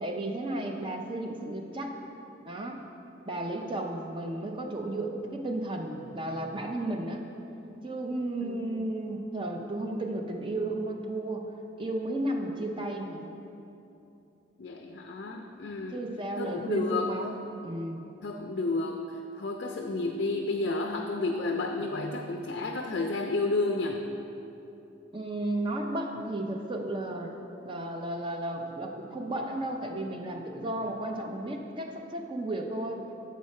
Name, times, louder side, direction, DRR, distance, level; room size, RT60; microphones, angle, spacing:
voice 1, 0.0-1.9 2.4-2.8 3.3-7.3 7.8-11.4 11.8-13.3 15.9-17.4 17.6-18.0 25.1-27.3 27.6-33.1, right 1 dB, 25° right, 2 dB, 0.5 m, -33 dB
voice 2, 8.4-8.8 12.6-12.7 14.6-16.0 16.4-17.1 18.2-19.0 19.4-24.1, left 3 dB, 55° left, 2 dB, 0.4 m, -31 dB
7.2 x 4.6 x 4.2 m, 2.8 s
head